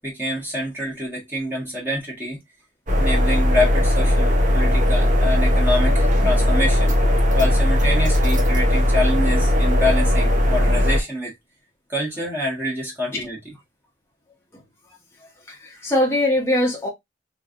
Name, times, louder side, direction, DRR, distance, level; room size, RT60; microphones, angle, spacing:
voice 1, 0.0-2.4 3.0-6.9 7.3-11.3 11.9-13.4, left 1 dB, 10° right, 1.5 m, -26 dB
sound 1, 2.9-11.0, left 1 dB, 45° right, 1.0 m, -18 dB
voice 2, 15.5-16.9, left 1 dB, 15° left, 1.1 m, -22 dB
3.3 x 3.1 x 2.5 m
head